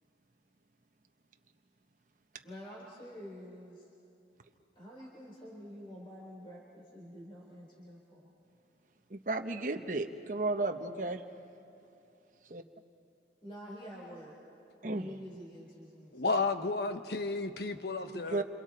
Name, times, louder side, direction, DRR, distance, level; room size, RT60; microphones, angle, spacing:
voice 1, 2.4-3.9 4.7-8.3 13.4-14.3 14.8-16.4, equal, 30° left, -5 dB, 4.4 m, -48 dB
voice 2, 9.1-11.2 12.5-12.6 14.8-15.1 18.1-18.4, right 2 dB, 45° right, 5 dB, 0.9 m, -34 dB
voice 3, 16.1-18.4, left 3 dB, 65° left, 8 dB, 1.2 m, -32 dB
28.5 x 27.5 x 4.4 m, 2.8 s
head